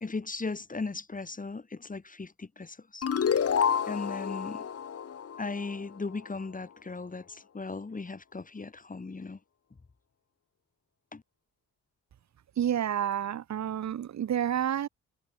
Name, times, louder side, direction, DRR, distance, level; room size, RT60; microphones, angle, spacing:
voice 1, 0.0-3.1 3.9-4.7 5.4-9.4 11.1-11.2, left 3 dB, 25° left, 2.8 m, -37 dB
sound 1, 3.0-6.2, left 7 dB, 50° left, 3.6 m, -29 dB
voice 2, 12.6-14.9, right 10 dB, 65° right, 3.4 m, -29 dB
open air
hypercardioid pair, 55°, 30 cm